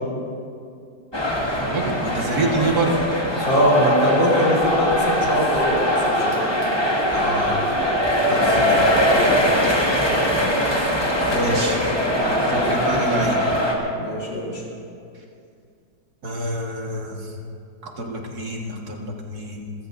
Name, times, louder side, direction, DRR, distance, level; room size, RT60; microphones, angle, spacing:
sound 1, 1.1-13.7, equal, 15° left, 1.8 m, -21 dB
voice 1, 1.6-2.9 7.1-7.5 8.3-9.0 11.3-11.8 12.2-13.4 16.2-17.2 18.0-19.7, right 2 dB, 55° right, 0 dB, 2.2 m, -27 dB
voice 2, 3.5-6.5 8.2-8.8 9.2-9.4 11.3-11.8 14.0-14.6, equal, 75° left, -4 dB, 4.3 m, -22 dB
29.0 x 14.5 x 2.6 m, 2.4 s
omnidirectional pair, 2.0 m